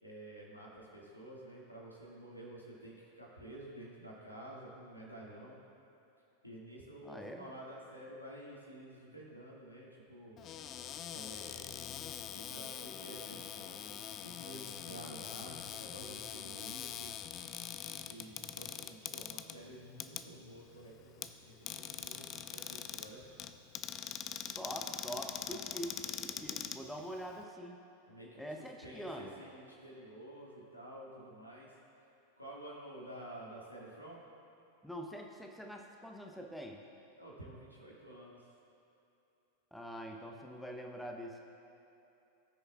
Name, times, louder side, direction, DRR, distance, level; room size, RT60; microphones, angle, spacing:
voice 1, 0.0-5.6 6.4-10.4 11.1-11.8 12.3-17.1 18.0-23.2 28.1-31.8 32.4-34.2 37.2-38.5, right 1 dB, 85° left, -5 dB, 2.0 m, -50 dB
voice 2, 7.0-7.5 24.6-27.8 28.4-29.4 34.8-36.8 39.7-41.4, equal, 5° left, 1 dB, 0.8 m, -44 dB
Cupboard open or close, 10.4-27.4, left 9 dB, 30° left, 0.4 m, -44 dB
19.0 x 6.5 x 2.4 m, 2.9 s
figure-of-eight pair, 90°, 0 cm